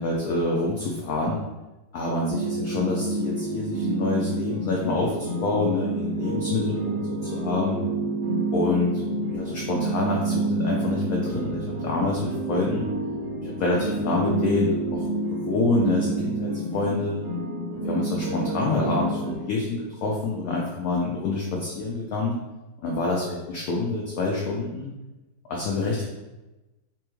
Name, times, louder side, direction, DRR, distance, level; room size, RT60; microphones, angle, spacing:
voice 1, 0.0-1.4 1.9-7.8 8.5-9.0 9.3-12.9 13.4-17.2 17.7-22.4 22.8-24.9 25.5-26.1, left 3 dB, 80° left, -2 dB, 0.8 m, -27 dB
sound 1, 2.3-19.3, right 3 dB, 65° right, 0.6 m, -29 dB
4.2 x 3.0 x 2.2 m, 1.1 s
omnidirectional pair, 2.1 m